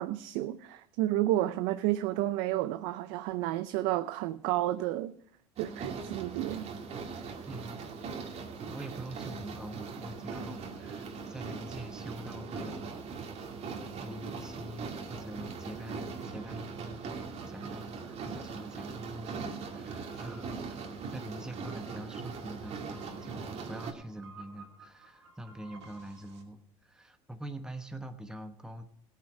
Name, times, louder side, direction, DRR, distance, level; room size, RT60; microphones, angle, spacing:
voice 1, 0.0-5.1 5.6-6.6, right 15 dB, 75° right, 0.6 m, -31 dB
sound 1, 5.6-23.9, right 5 dB, 50° right, 2.2 m, -40 dB
voice 2, 7.5-8.0 8.7-13.0 14.0-28.9, right 1 dB, 5° right, 1.2 m, -45 dB
sound 2, 15.6-26.4, right 3 dB, 90° right, 2.2 m, -57 dB
16.5 x 9.2 x 4.9 m
hypercardioid pair, 80°, 14 cm